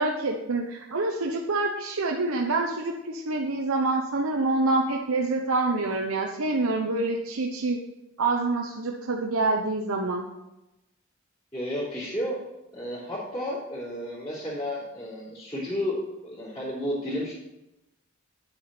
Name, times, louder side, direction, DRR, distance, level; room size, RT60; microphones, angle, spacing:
voice 1, 0.0-7.8 8.2-10.3, right 2 dB, 85° right, 1 dB, 0.9 m, -26 dB
voice 2, 11.5-12.4 12.7-17.3, left 1 dB, 20° left, -10 dB, 3.7 m, -32 dB
9.7 x 8.9 x 4.4 m, 0.93 s
head